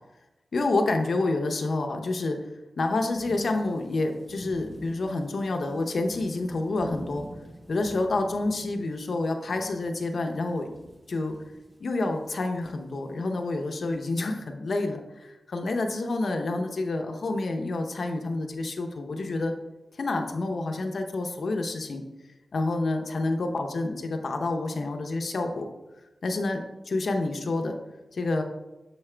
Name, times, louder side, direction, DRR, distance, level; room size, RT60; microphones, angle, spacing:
voice 1, 0.5-2.5 2.8-7.3 7.7-10.7 11.1-11.4 11.8-19.5 20.0-22.0 22.5-25.7 26.2-27.8 28.1-28.4, left 2 dB, 60° left, 4 dB, 0.6 m, -28 dB
sound 1, 3.1-13.9, right 1 dB, 15° right, 1.0 m, -46 dB
6.4 x 4.8 x 3.3 m, 1.0 s
wide cardioid pair, 150°, 0 cm